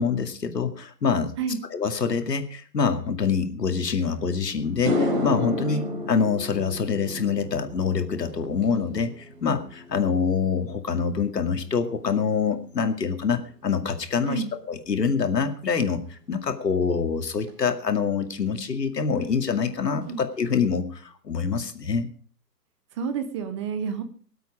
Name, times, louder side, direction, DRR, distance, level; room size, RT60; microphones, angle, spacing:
voice 1, 0.0-1.3 1.7-22.1, left 5 dB, 75° left, 7 dB, 2.4 m, -25 dB
sound 1, 4.1-4.2 4.6-13.2 13.4-13.9 17.5-17.6 19.2-19.3 19.6-19.7 20.0-20.5, left 2 dB, 35° right, 4.1 m, -33 dB
voice 2, 22.9-24.0, right 6 dB, 20° right, 9 dB, 0.8 m, -29 dB
24.0 x 8.2 x 5.0 m, 0.43 s
hypercardioid pair, 140°, 49 cm